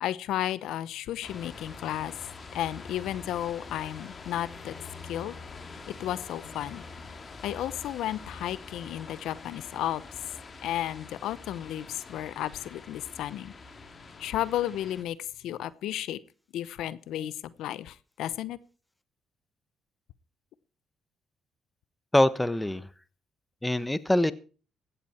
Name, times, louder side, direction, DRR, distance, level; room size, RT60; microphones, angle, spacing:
voice 1, 0.0-2.1 2.5-4.7 5.0-5.3 5.9-6.8 7.4-10.0 10.6-13.5 14.2-16.2 16.5-18.6, left 12 dB, 85° left, 18 dB, 0.8 m, -33 dB
sound 1, 1.2-15.0, left 4 dB, 40° left, 3.1 m, -45 dB
voice 2, 22.1-22.9 23.6-24.3, left 1 dB, 10° left, 15 dB, 1.2 m, -24 dB
16.0 x 12.5 x 4.4 m, 0.36 s
cardioid pair, 90°, 0 cm